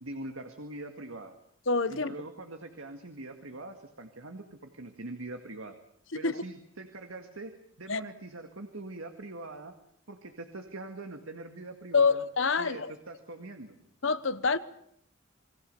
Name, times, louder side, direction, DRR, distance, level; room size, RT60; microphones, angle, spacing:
voice 1, 0.0-1.3 1.9-5.8 6.1-9.7 10.1-12.2 12.6-13.8, right 2 dB, 80° right, 6 dB, 2.0 m, -43 dB
voice 2, 1.7-2.1 6.2-6.4 7.9-8.0 11.9-12.9 14.0-14.6, left 4 dB, 65° left, 13 dB, 1.0 m, -26 dB
28.5 x 21.5 x 6.8 m, 0.69 s
head